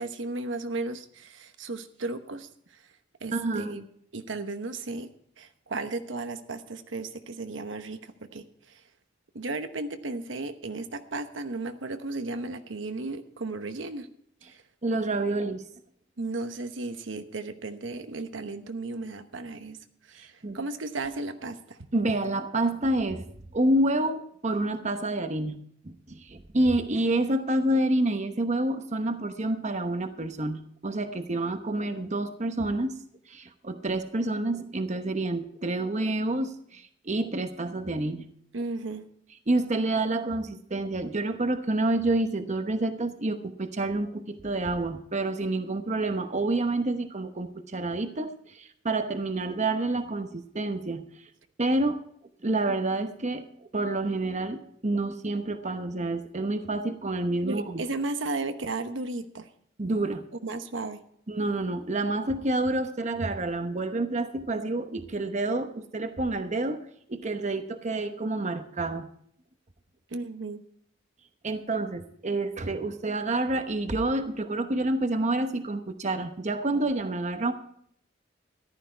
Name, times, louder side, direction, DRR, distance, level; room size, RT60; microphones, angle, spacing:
voice 1, 0.0-2.8 3.2-3.8 4.1-5.1 5.4-8.8 9.3-14.1 14.5-14.6 16.2-19.8 20.1-21.9 38.5-39.1 57.4-59.5 60.4-61.0 70.1-70.6, right 3 dB, 75° right, 8 dB, 1.0 m, -35 dB
voice 2, 3.3-3.7 14.8-15.6 20.2-20.6 21.9-23.2 23.5-25.6 25.8-32.9 33.3-38.3 39.5-51.0 51.6-52.0 52.4-53.4 53.7-57.8 59.8-60.2 61.3-66.8 67.1-69.1 71.4-77.5, right 2 dB, 40° right, 8 dB, 1.0 m, -28 dB
14.0 x 12.0 x 4.5 m, 0.65 s
head